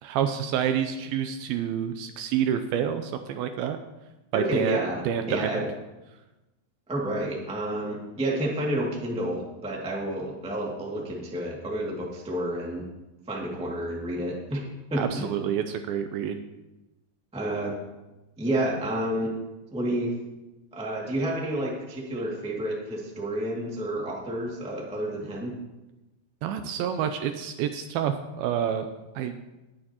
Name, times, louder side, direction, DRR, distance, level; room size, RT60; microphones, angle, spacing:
voice 1, 0.0-3.8 4.3-5.6 15.0-16.4 26.4-28.9 29.2-29.4, right 9 dB, 80° right, 7 dB, 2.2 m, -28 dB
voice 2, 4.3-5.7 6.9-12.8 13.3-14.6 14.9-15.3 17.3-17.8 18.4-19.3 19.7-20.1 20.7-25.5, right 1 dB, 5° right, -3 dB, 0.4 m, -30 dB
20.0 x 8.8 x 2.9 m, 1.1 s
omnidirectional pair, 4.7 m